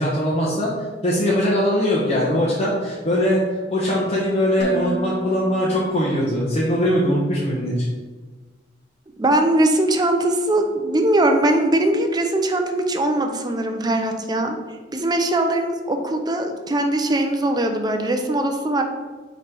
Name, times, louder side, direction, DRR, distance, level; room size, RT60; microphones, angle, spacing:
voice 1, 0.0-3.4 3.7-7.9, equal, 35° left, -7 dB, 1.1 m, -21 dB
Dishes pots and pans, 4.6-6.7, right 3 dB, 70° left, 1.2 m, -33 dB
voice 2, 9.2-14.5 14.9-18.8, right 1 dB, 25° right, 5 dB, 0.6 m, -21 dB
5.6 x 3.3 x 5.3 m, 1.3 s
head